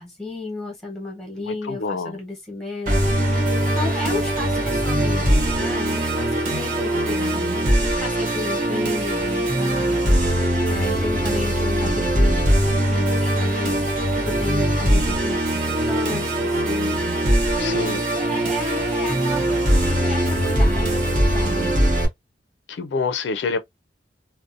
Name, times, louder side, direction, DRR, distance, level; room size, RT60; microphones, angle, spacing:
voice 1, 0.0-21.8, left 2 dB, 5° left, 1.0 m, -33 dB
voice 2, 1.4-2.2 17.6-18.0 22.7-23.6, left 4 dB, 80° left, 0.4 m, -27 dB
Musical instrument, 2.9-22.1, right 1 dB, 45° right, 0.9 m, -21 dB
2.6 x 2.0 x 2.4 m
head